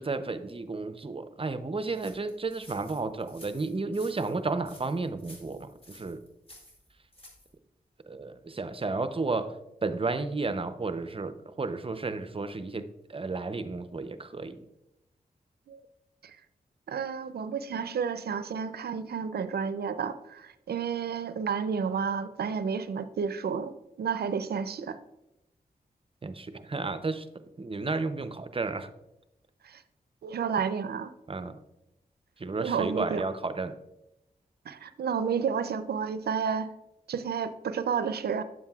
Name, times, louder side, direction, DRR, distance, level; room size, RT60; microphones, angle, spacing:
voice 1, 0.0-6.2 8.1-9.5 9.8-14.6 26.2-27.3 27.6-28.9 31.3-31.6 32.4-33.8, right 3 dB, 35° right, 11 dB, 0.6 m, -32 dB
sound 1, 1.9-7.5, equal, 35° left, 2.3 m, -53 dB
voice 2, 16.9-23.7 24.0-25.0 29.6-29.8 30.2-31.1 32.6-33.2 34.7-36.7 37.1-38.4, right 6 dB, 80° right, 12 dB, 0.4 m, -31 dB
9.4 x 7.3 x 2.3 m, 0.91 s
cardioid pair, 40°, 16 cm